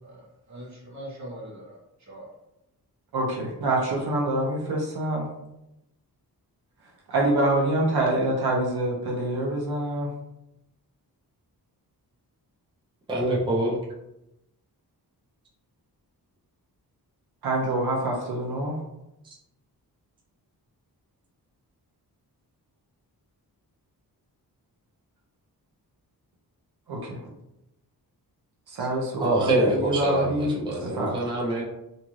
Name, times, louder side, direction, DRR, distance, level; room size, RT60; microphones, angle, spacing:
voice 1, 0.5-2.3, right 1 dB, 45° right, -4 dB, 1.1 m, -42 dB
voice 2, 3.1-5.3 7.1-10.1 17.4-18.8 26.9-27.2 28.7-30.5 30.8-31.2, right 1 dB, 70° right, -1 dB, 0.6 m, -26 dB
voice 3, 13.1-13.8 29.2-31.6, right 1 dB, 15° right, -4 dB, 0.5 m, -25 dB
2.6 x 2.3 x 3.0 m, 0.88 s
wide cardioid pair, 130°, 39 cm